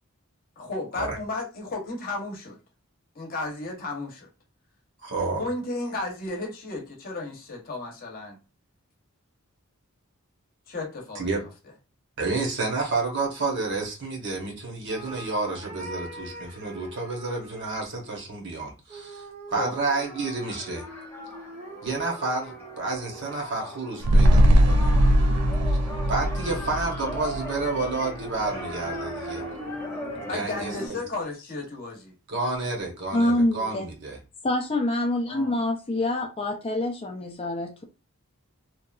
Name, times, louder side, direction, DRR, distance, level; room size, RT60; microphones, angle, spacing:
voice 1, 0.6-2.6 3.1-4.3 5.4-8.4 10.7-11.3 19.6-19.8 30.3-32.1 35.3-35.6, left 2 dB, 40° left, 0.8 m, -33 dB
voice 2, 5.0-5.4 11.1-11.4 12.2-19.2 19.5-20.9 21.8-24.9 25.7-25.8 26.1-29.4 30.2-31.0 32.3-34.2, right 3 dB, 55° right, 0.9 m, -30 dB
sound 1, 14.9-17.9 18.9-23.7 25.1-31.2, right 2 dB, 30° right, 0.5 m, -42 dB
sound 2, 19.5-30.9, equal, 10° left, 0.9 m, -40 dB
sound 3, 24.0-28.5 28.9-29.0, equal, 85° right, 0.4 m, -21 dB
voice 3, 33.1-33.9 34.4-37.8, left 1 dB, 25° left, 0.4 m, -26 dB
2.8 x 2.3 x 2.3 m
head